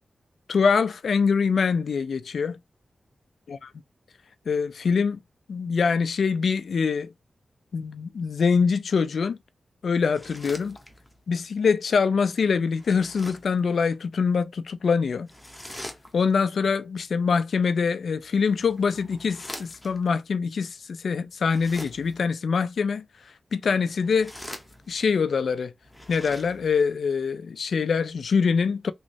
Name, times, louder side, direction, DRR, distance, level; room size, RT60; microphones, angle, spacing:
voice 1, 0.5-2.6 3.5-3.7 4.5-5.2 5.5-7.1 7.7-9.4 9.8-10.8 11.3-15.3 16.1-23.0 23.5-24.3 24.9-25.7 26.1-28.9, left 5 dB, 75° left, 0.4 m, -24 dB
sound 1, 10.0-11.2 12.7-13.6 15.3-16.4 18.2-20.1 21.4-22.3 23.9-25.2 25.8-26.9, left 1 dB, 10° left, 0.7 m, -43 dB
3.1 x 3.0 x 2.6 m
wide cardioid pair, 125°, 0 cm